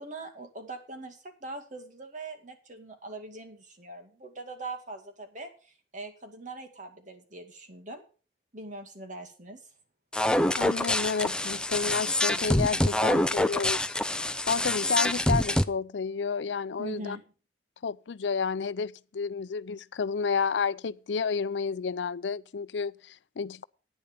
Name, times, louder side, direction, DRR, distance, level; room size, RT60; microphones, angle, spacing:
voice 1, 0.0-8.0 8.5-9.7 16.8-17.3, right 2 dB, 45° right, 2.2 m, -42 dB
sound 1, 10.1-15.6, left 1 dB, 5° left, 0.5 m, -26 dB
voice 2, 10.6-14.0 14.5-17.2 17.8-23.6, left 5 dB, 90° left, 0.5 m, -31 dB
10.5 x 9.9 x 5.2 m
head